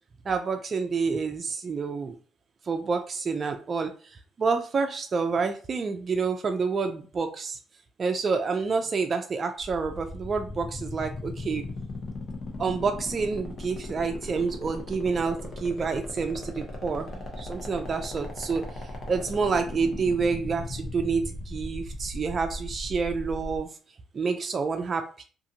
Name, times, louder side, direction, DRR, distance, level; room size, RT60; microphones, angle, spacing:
voice 1, 0.3-2.1 2.7-3.9 4.4-7.6 8.0-11.6 12.6-18.6 19.1-23.7 24.1-25.2, right 5 dB, 40° right, 5 dB, 0.4 m, -28 dB
sound 1, 9.6-23.6, left 2 dB, 45° left, 0.9 m, -38 dB
2.7 x 2.4 x 2.7 m, 0.39 s
cardioid pair, 95°, 0 cm